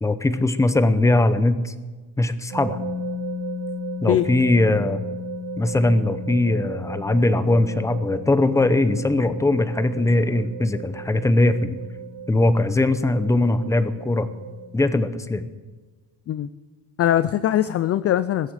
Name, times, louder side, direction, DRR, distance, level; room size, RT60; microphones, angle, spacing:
voice 1, 0.0-1.7 2.2-2.8 4.0-5.0 5.6-11.8 12.3-14.3 14.7-15.4, left 2 dB, 5° left, 12 dB, 0.7 m, -20 dB
sound 1, 2.5-14.7, equal, 80° right, 5.1 m, -34 dB
voice 2, 17.0-18.5, left 12 dB, 35° left, 14 dB, 0.4 m, -21 dB
21.0 x 8.3 x 7.5 m, 1.3 s
cardioid pair, 135°, 46 cm